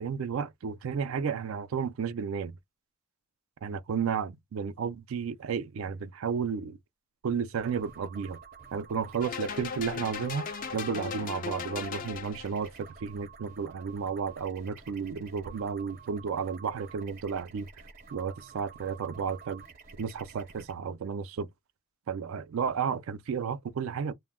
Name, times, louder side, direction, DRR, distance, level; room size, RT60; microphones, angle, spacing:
voice 1, 0.0-2.6 3.6-6.8 7.2-8.4 8.7-17.7 18.1-19.6 20.0-21.5 22.1-24.1, right 6 dB, 70° right, 0.4 m, -32 dB
sound 1, 7.5-20.7, right 5 dB, 40° right, 0.7 m, -51 dB
sound 2, 9.2-12.7, left 6 dB, 40° left, 0.3 m, -37 dB
2.1 x 2.1 x 3.4 m
head